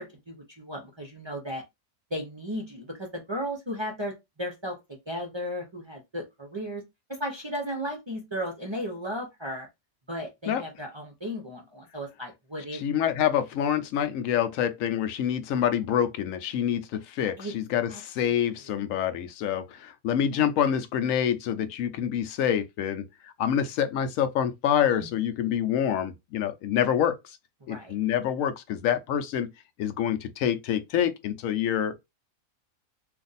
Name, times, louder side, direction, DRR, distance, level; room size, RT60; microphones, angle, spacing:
voice 1, 0.0-1.6 2.1-4.8 5.1-6.8 7.1-9.7 10.1-12.8 17.4-17.5 17.9-18.0 20.4-20.5 25.0-25.1 27.7-27.9, equal, 35° right, 0.4 m, -35 dB
voice 2, 12.7-23.0 23.4-27.1 27.7-29.5 29.8-31.9, left 9 dB, 70° left, 0.9 m, -26 dB
2.6 x 2.5 x 3.9 m
omnidirectional pair, 1.5 m